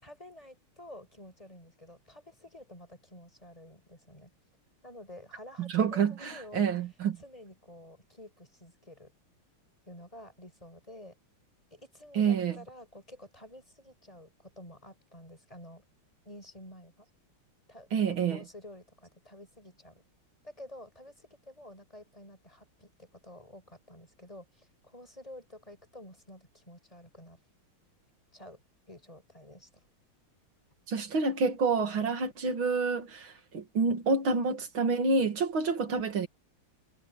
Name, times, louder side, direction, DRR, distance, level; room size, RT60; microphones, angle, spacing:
voice 1, 0.0-4.3 4.8-6.7 7.2-9.1 9.9-11.2 11.7-15.8 16.3-17.1 17.7-20.0 20.4-27.4 28.3-28.6 28.9-29.7, left 1 dB, 15° left, 5.8 m, -50 dB
voice 2, 5.6-7.2 12.1-12.6 17.9-18.4 30.9-36.3, right 4 dB, 70° right, 2.9 m, -28 dB
omnidirectional pair, 2.3 m